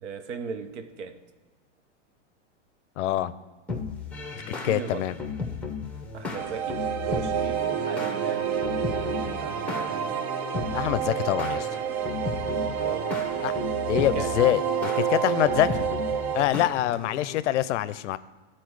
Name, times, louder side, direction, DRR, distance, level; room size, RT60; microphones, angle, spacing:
voice 1, 0.0-1.2 4.6-5.2 6.1-8.6 8.8-10.1 12.8-13.1 13.9-14.3, right 6 dB, 70° right, 9 dB, 0.9 m, -38 dB
voice 2, 3.0-3.3 4.6-5.2 10.7-11.7 13.4-13.5 13.9-15.9 16.3-18.2, left 13 dB, 75° left, 16 dB, 0.5 m, -25 dB
sound 1, 3.7-17.4, left 4 dB, 5° left, 0.9 m, -35 dB
sound 2, 6.3-16.5, right 8 dB, 35° right, 0.5 m, -29 dB
12.5 x 4.3 x 4.7 m, 1.3 s
hypercardioid pair, 130°, 37 cm